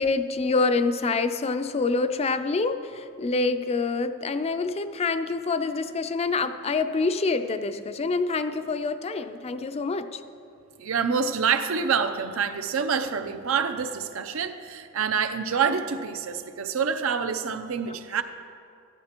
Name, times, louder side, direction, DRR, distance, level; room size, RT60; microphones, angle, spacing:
voice 1, 0.0-10.2 17.9-18.0, left 3 dB, 30° left, 10 dB, 0.4 m, -26 dB
voice 2, 10.8-18.2, right 6 dB, 75° right, 9 dB, 0.6 m, -27 dB
13.5 x 11.5 x 2.9 m, 2.4 s
head